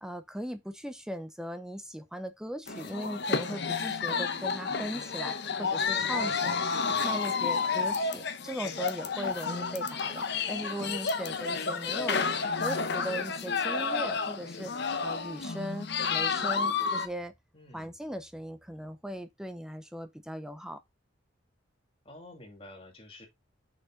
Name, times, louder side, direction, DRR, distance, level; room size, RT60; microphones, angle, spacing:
voice 1, 0.0-6.6 7.0-12.2 12.6-14.7 15.0-17.3 17.7-20.8, equal, 5° right, 0.7 m, -38 dB
sound 1, 2.7-17.1, left 5 dB, 60° left, 0.9 m, -31 dB
voice 2, 5.9-7.3 17.5-17.9 22.0-23.3, left 2 dB, 30° left, 2.2 m, -49 dB
6.4 x 5.4 x 3.7 m
head